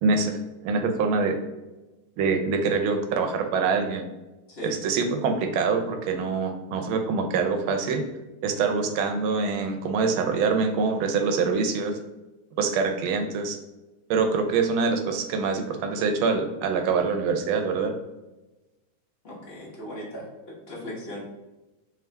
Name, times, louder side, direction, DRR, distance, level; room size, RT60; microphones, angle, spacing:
voice 1, 0.0-1.4 2.2-4.1 4.6-8.0 8.4-12.0 12.6-13.6 14.1-17.9, right 4 dB, 80° right, 4 dB, 1.4 m, -25 dB
voice 2, 19.2-20.3 20.6-21.2, left 1 dB, 35° left, -5 dB, 1.1 m, -37 dB
3.5 x 3.2 x 3.3 m, 1.1 s
omnidirectional pair, 2.3 m